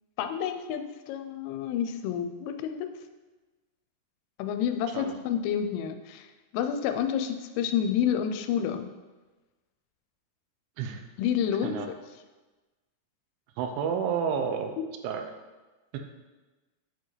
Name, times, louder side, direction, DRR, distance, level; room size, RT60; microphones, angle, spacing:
voice 1, 0.2-2.9 4.4-6.3 6.5-8.9 11.2-11.7 14.8-14.9, left 8 dB, 85° left, 7 dB, 3.1 m, -29 dB
voice 2, 13.6-14.7 15.0-15.2 15.9-16.0, right 7 dB, 85° right, 5 dB, 2.9 m, -30 dB
9.3 x 4.7 x 3.1 m, 1.2 s
omnidirectional pair, 5.6 m